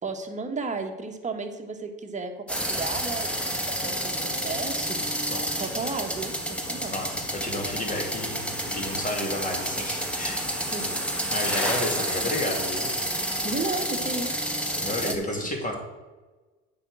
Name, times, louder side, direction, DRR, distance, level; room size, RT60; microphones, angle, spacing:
voice 1, 0.0-5.0 5.5-6.9 10.7-11.0 13.4-14.4 15.0-15.5, right 3 dB, 20° right, 4 dB, 1.5 m, -34 dB
sound 1, 2.5-15.2, equal, 5° left, 1.7 m, -29 dB
voice 2, 6.9-11.0 11.3-12.9 14.6-15.8, left 1 dB, 25° left, 2 dB, 2.6 m, -32 dB
8.6 x 6.0 x 6.4 m, 1.2 s
supercardioid pair, 85°, 32 cm